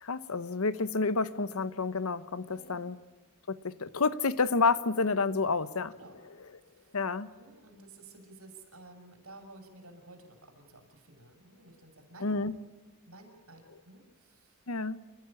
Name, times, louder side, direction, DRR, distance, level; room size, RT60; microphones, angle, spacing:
voice 1, 0.0-3.0 3.5-5.9 6.9-7.3 12.2-12.5 14.7-15.0, left 4 dB, 80° left, 1.0 m, -29 dB
voice 2, 2.5-2.8 5.9-6.2 6.7-12.3 13.1-14.6, right 2 dB, 85° right, 6.2 m, -53 dB
29.5 x 14.5 x 8.7 m
head